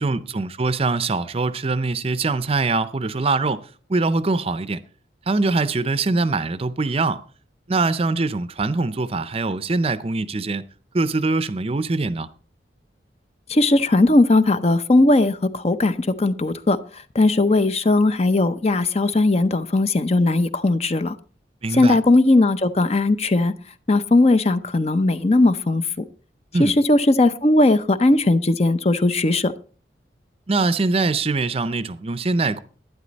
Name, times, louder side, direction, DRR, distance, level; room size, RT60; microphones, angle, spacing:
voice 1, 0.0-3.6 3.9-4.8 5.3-7.2 7.7-10.6 10.9-12.3 21.6-22.0 26.5-26.8 30.5-32.6, right 3 dB, 35° right, 0.6 m, -23 dB
voice 2, 13.5-16.8 17.1-21.1 21.7-23.5 23.9-25.8 26.6-29.5, left 2 dB, 35° left, 0.7 m, -18 dB
11.5 x 10.5 x 4.0 m
head